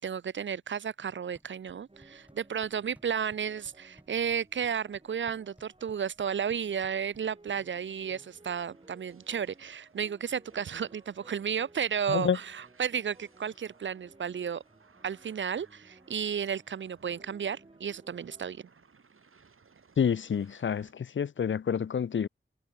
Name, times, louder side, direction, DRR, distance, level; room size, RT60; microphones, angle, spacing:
voice 1, 0.0-14.6 15.0-18.6, right 7 dB, 65° right, 0.5 m, -33 dB
sound 1, 1.1-8.1, equal, 5° right, 6.8 m, -62 dB
sound 2, 1.9-18.5, right 2 dB, 25° right, 5.4 m, -59 dB
sound 3, 4.4-20.9, right 5 dB, 80° right, 7.9 m, -64 dB
voice 2, 20.0-22.3, left 7 dB, 65° left, 0.5 m, -28 dB
wide cardioid pair, 105°, 21 cm